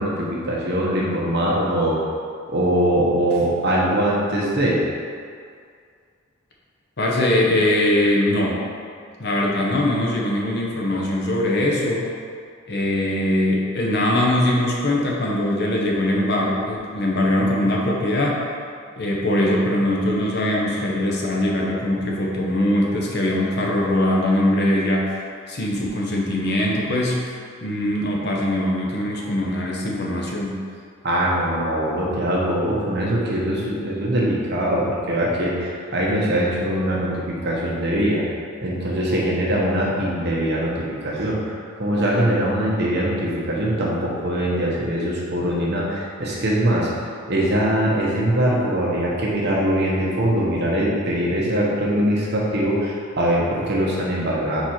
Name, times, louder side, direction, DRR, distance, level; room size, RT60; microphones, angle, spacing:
voice 1, 0.0-2.0 2.5-4.8 31.0-38.2 38.6-46.9 47.3-54.6, right 1 dB, 55° right, -4 dB, 1.2 m, -22 dB
voice 2, 7.0-8.6 9.2-12.1 12.7-18.4 19.0-25.1 25.5-30.6, left 1 dB, 55° left, -3 dB, 0.9 m, -21 dB
4.7 x 4.7 x 4.4 m, 2.2 s
head